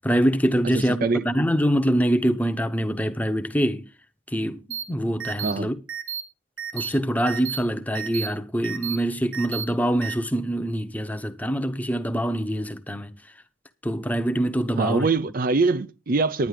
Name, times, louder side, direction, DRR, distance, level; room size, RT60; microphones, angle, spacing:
voice 1, 0.0-3.9 4.3-5.8 6.7-13.1 13.8-15.1, equal, 10° left, 0.9 m, -24 dB
voice 2, 0.7-1.2 5.4-5.7 14.8-16.5, right 3 dB, 45° right, 0.5 m, -23 dB
sound 1, 4.7-4.8 5.2-5.5 5.9-6.2 6.6-6.9 7.3-7.6 8.0-8.3 8.6-9.0 9.3-9.6 10.0-10.1, right 8 dB, 85° right, 2.5 m, -31 dB
11.0 x 10.0 x 4.9 m
head